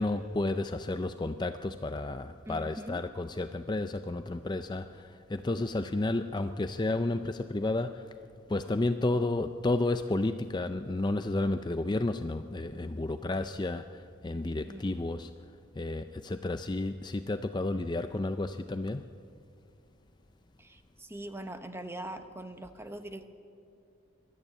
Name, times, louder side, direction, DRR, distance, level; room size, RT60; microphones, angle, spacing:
voice 1, 0.0-8.2 8.5-15.3 15.8-19.1, left 2 dB, 20° left, 9 dB, 0.4 m, -31 dB
voice 2, 2.5-3.0 14.7-15.0 20.6-23.3, right 1 dB, 10° right, 8 dB, 0.9 m, -42 dB
21.5 x 13.5 x 9.9 m, 2.5 s
head